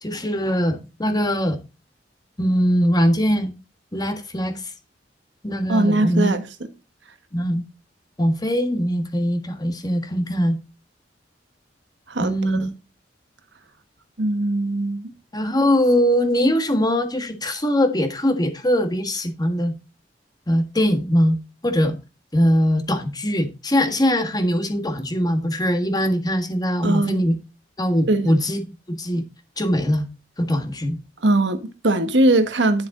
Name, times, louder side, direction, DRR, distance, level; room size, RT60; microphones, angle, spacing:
voice 1, 0.0-1.6 2.4-3.5 3.9-4.7 5.4-6.3 7.3-7.6 8.2-10.6 12.2-12.7 15.3-19.7 20.5-21.4 21.6-22.0 22.3-27.3 27.8-28.6 28.9-29.2 29.6-30.1 30.4-31.0, equal, 20° left, 1.6 m, -21 dB
voice 2, 5.7-6.5 12.1-12.6 14.2-15.1 26.8-27.3 28.1-28.3 31.2-32.9, right 2 dB, 80° right, 1.4 m, -20 dB
10.5 x 6.9 x 3.8 m
head